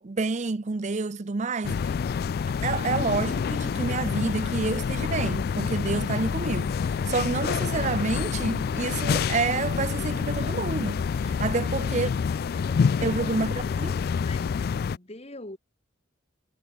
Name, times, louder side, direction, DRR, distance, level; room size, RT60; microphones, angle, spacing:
voice 1, 0.0-1.9 2.5-12.1 13.0-14.0, right 4 dB, 35° right, 0.5 m, -29 dB
sound 1, 1.6-15.0, left 6 dB, 50° left, 0.3 m, -27 dB
voice 2, 12.5-13.8 14.2-15.6, left 2 dB, 30° left, 2.2 m, -44 dB
head